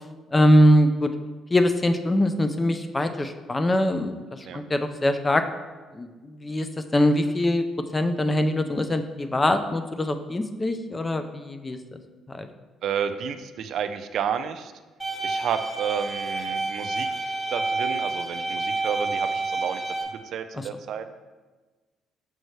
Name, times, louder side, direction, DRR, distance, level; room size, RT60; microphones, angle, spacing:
voice 1, 0.3-1.1 1.5-5.4 5.9-6.7 6.9-7.6 7.9-11.8 12.3-12.5 20.6-20.7, left 1 dB, 20° left, 8 dB, 0.4 m, -22 dB
voice 2, 12.8-14.7 15.2-19.8 20.3-21.0, right 7 dB, 65° right, 10 dB, 0.4 m, -31 dB
sound 1, 15.0-20.0, right 3 dB, 5° right, 1.5 m, -29 dB
6.4 x 5.3 x 3.1 m, 1.3 s
cardioid pair, 120°, 0 cm